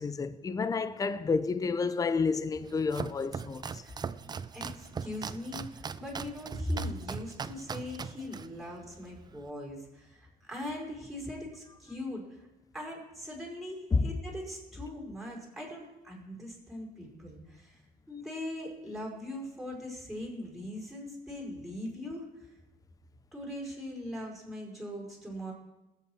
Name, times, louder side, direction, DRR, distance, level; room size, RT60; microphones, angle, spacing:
voice 1, 0.0-3.8 13.9-14.1, left 4 dB, 20° left, 0.6 m, -30 dB
Domestic sounds home sounds, 2.5-9.5, right 6 dB, 25° right, 0.4 m, -40 dB
voice 2, 4.5-12.5 12.7-17.8 18.1-22.5 23.3-25.5, left 1 dB, ahead, 5.0 m, -40 dB
20.0 x 8.4 x 4.7 m
cardioid pair, 110°, 17 cm